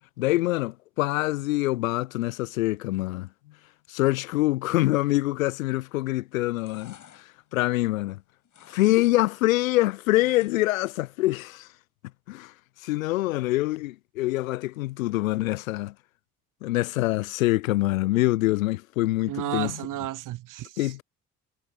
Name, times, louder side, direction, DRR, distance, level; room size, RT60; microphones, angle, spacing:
voice 1, 0.2-3.3 3.9-8.2 8.7-11.7 12.3-12.5 12.8-15.9 16.6-19.7 20.8-21.0, left 18 dB, 75° left, 0.6 m, -25 dB
sound 1, 5.8-6.1 6.4-8.1 8.4-9.2 9.4-10.8 11.2-11.3, left 9 dB, 45° left, 5.3 m, -53 dB
voice 2, 19.3-20.8, right 14 dB, 50° right, 1.0 m, -32 dB
figure-of-eight pair, 45°, 41 cm